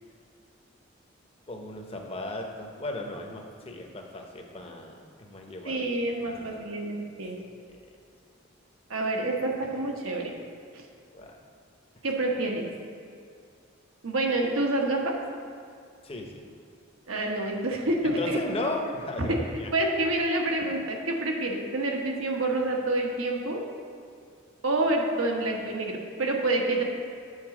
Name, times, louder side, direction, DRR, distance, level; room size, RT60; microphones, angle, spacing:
voice 1, 1.5-5.8 6.3-6.6 11.1-11.3 16.0-16.4 18.0-19.7, left 2 dB, 30° left, 2 dB, 0.7 m, -36 dB
voice 2, 5.6-7.4 8.9-10.3 10.7-10.8 12.0-12.6 14.0-15.1 17.1-18.4 19.2-23.6 24.6-26.8, right 2 dB, 85° right, 1 dB, 1.1 m, -28 dB
8.2 x 4.1 x 5.9 m, 2.3 s
head